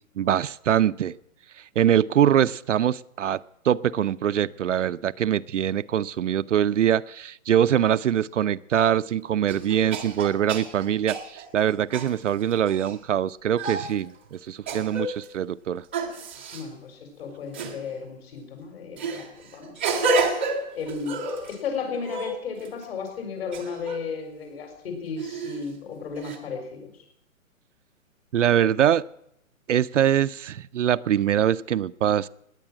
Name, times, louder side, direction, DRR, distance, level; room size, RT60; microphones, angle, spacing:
voice 1, 0.2-1.1 1.8-15.8 28.3-29.0 29.7-32.3, right 10 dB, 60° right, 14 dB, 0.5 m, -23 dB
sound 1, 8.7-8.8 9.5-12.9 13.6-13.9 14.7-15.3 15.9-16.6 17.5-17.8 19.0-21.6 21.9-22.8 23.5-24.0 25.2-25.6 26.2-26.4, right 3 dB, 10° right, 0.6 m, -30 dB
voice 2, 16.5-20.4 20.7-21.2 21.5-27.1, left 5 dB, 45° left, 5 dB, 4.7 m, -34 dB
18.0 x 9.9 x 7.4 m, 0.76 s
hypercardioid pair, 170°, 41 cm